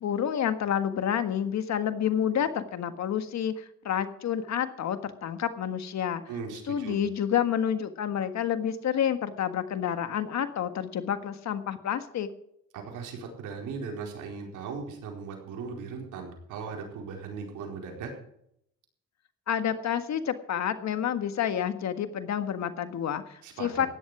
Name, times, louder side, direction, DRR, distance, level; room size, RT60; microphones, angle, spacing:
voice 1, 0.0-6.2 6.7-12.3 19.5-23.9, left 9 dB, 65° left, 9 dB, 1.6 m, -29 dB
voice 2, 6.3-7.0 12.7-18.1 23.4-23.8, right 5 dB, 90° right, 1 dB, 4.6 m, -38 dB
15.5 x 11.0 x 5.0 m, 0.74 s
cardioid pair, 90°, 30 cm